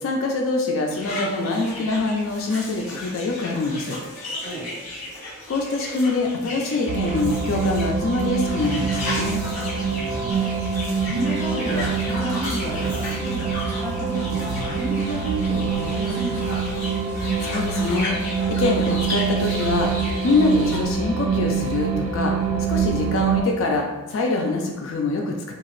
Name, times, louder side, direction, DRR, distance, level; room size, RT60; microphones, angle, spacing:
voice 1, 0.0-4.0 5.5-9.4 17.4-19.9 20.2-25.5, left 3 dB, 65° left, 1 dB, 0.3 m, -24 dB
sound 1, 0.9-20.8, left 1 dB, 35° left, 1.0 m, -34 dB
sound 2, 6.9-23.4, right 6 dB, 70° right, 0.4 m, -25 dB
voice 2, 9.8-10.4 11.0-16.6, right 1 dB, 5° right, -12 dB, 1.3 m, -31 dB
2.8 x 2.4 x 3.1 m, 1.1 s
head